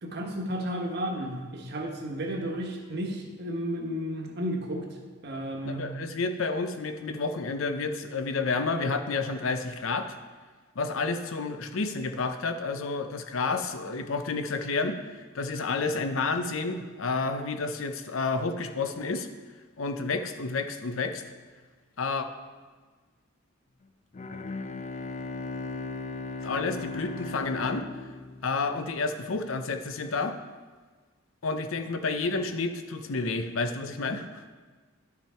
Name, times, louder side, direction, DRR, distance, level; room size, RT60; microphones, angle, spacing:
voice 1, 0.0-4.9 5.2-5.8, equal, 55° right, 1 dB, 1.3 m, -33 dB
voice 2, 5.7-10.1 10.8-15.0 15.3-19.3 19.8-21.2 22.0-22.3 26.4-27.9 28.4-30.4 31.4-34.4, left 3 dB, 90° left, 8 dB, 0.7 m, -30 dB
Bowed string instrument, 24.1-29.1, left 3 dB, 35° left, 0.4 m, -37 dB
10.5 x 5.9 x 4.4 m, 1.4 s
head